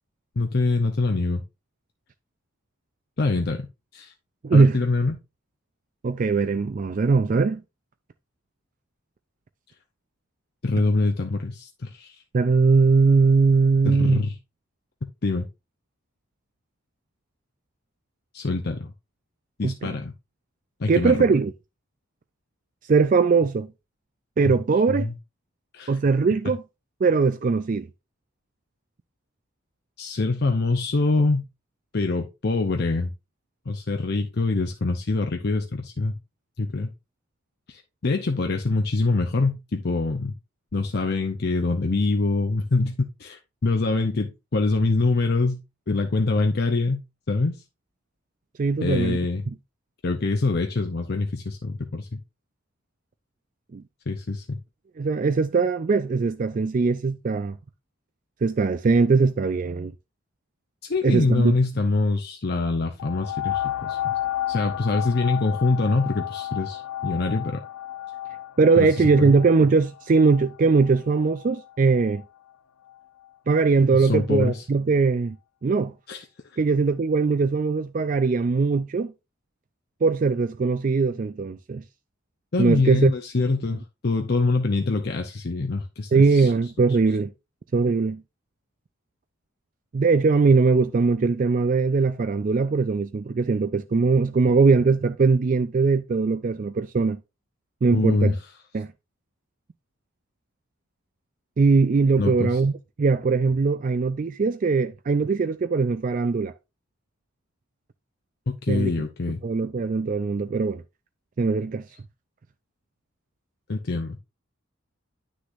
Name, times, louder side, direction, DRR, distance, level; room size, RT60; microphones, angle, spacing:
voice 1, 0.4-1.4 3.2-3.7 3.9-4.1 4.5-5.2 10.6-12.2 13.9-14.3 15.2-15.5 18.3-18.9 19.6-20.1 20.8-21.2 24.4-24.5 24.9-25.1 25.7-26.0 30.0-31.4 31.9-33.1 33.7-36.1 36.6-36.9 37.7-40.4 40.7-45.6 45.9-47.6 48.8-49.4 50.0-52.2 54.1-54.6 60.8-64.1 64.5-67.6 68.8-68.9 69.2-69.3 73.9-74.6 76.1-76.2 82.5-86.5 97.9-98.4 102.2-102.6 108.6-109.4 113.7-114.2, left 3 dB, 50° left, 0.6 m, -24 dB
voice 2, 4.4-4.8 6.0-7.6 12.3-14.2 19.6-19.9 20.9-21.5 22.9-23.7 24.4-25.1 25.9-26.6 27.0-27.9 48.6-49.2 53.7-53.8 55.0-57.6 58.4-59.9 61.0-61.5 68.6-72.2 73.5-75.4 75.6-75.9 76.6-79.1 80.0-81.8 82.6-83.1 86.1-87.3 87.7-88.2 89.9-97.2 97.8-98.3 98.7-98.9 101.6-102.7 103.0-106.5 108.7-108.9 109.4-110.8 111.4-111.8, right 4 dB, 40° right, 0.3 m, -20 dB
sound 1, 63.0-72.2 72.9-73.0, left 12 dB, 85° left, 0.3 m, -32 dB
9.8 x 6.2 x 2.6 m
head